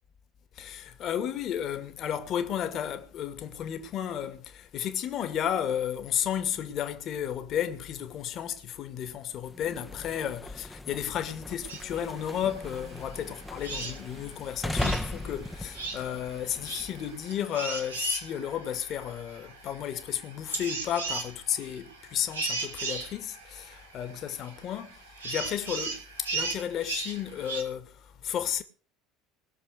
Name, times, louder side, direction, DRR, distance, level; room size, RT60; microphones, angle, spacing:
voice 1, 0.5-28.6, left 9 dB, 45° left, 2.2 m, -33 dB
sound 1, 9.5-17.3, left 1 dB, 5° left, 1.3 m, -38 dB
sound 2, 11.7-27.6, right 4 dB, 85° right, 3.1 m, -38 dB
21.0 x 7.1 x 6.6 m
figure-of-eight pair, 65°, 0 cm